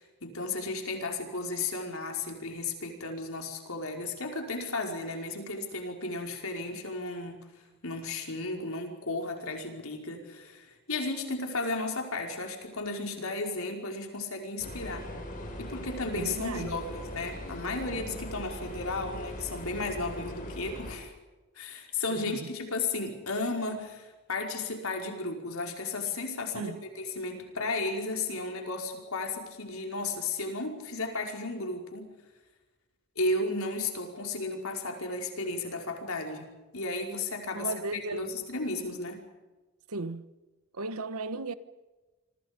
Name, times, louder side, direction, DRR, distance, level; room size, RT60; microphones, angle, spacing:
voice 1, 0.0-7.4 7.8-15.1 15.6-21.1 21.5-32.1 33.1-39.2, left 3 dB, 70° left, 5.1 m, -34 dB
sound 1, 14.6-21.0, left 1 dB, 40° left, 6.3 m, -40 dB
voice 2, 16.1-16.8 22.1-22.5 26.5-26.8 37.5-38.3 39.9-40.3 40.7-41.5, right 3 dB, 85° right, 1.3 m, -36 dB
27.5 x 25.0 x 5.3 m
head